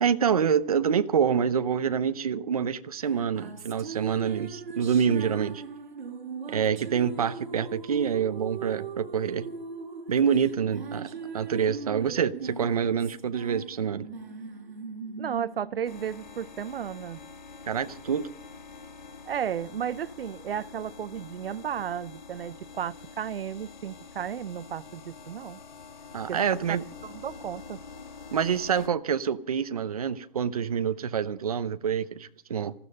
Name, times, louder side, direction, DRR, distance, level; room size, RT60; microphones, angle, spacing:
voice 1, 0.0-5.6 6.5-9.4 10.1-11.1 11.3-14.1 17.7-18.3 26.1-26.8 28.3-32.7, right 7 dB, 40° right, 0.7 m, -26 dB
sound 1, 3.1-16.7, right 5 dB, 55° right, 4.6 m, -40 dB
voice 2, 15.2-17.2 19.3-25.6 26.3-26.4 27.0-27.8, right 9 dB, 75° right, 0.6 m, -34 dB
sound 2, 15.8-28.9, left 4 dB, 50° left, 1.5 m, -46 dB
19.0 x 14.5 x 5.4 m
hypercardioid pair, 180°, 29 cm